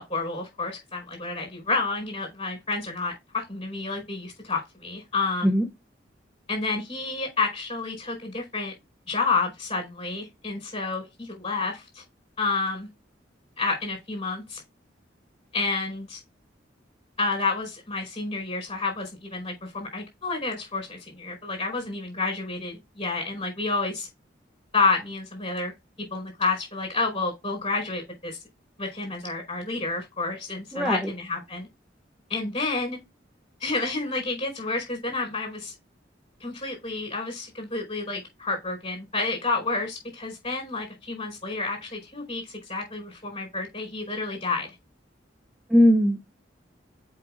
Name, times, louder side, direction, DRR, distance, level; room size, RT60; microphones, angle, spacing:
voice 1, 0.0-5.5 6.5-8.7 9.1-12.0 12.4-12.9 13.6-14.6 15.5-16.2 17.2-24.1 24.7-25.7 26.1-28.4 28.8-31.7 32.3-33.0 33.6-35.7 36.4-44.7, left 3 dB, 35° left, 4.8 m, -29 dB
voice 2, 30.7-31.1 45.7-46.4, equal, 5° right, 0.7 m, -20 dB
7.4 x 5.5 x 2.5 m
head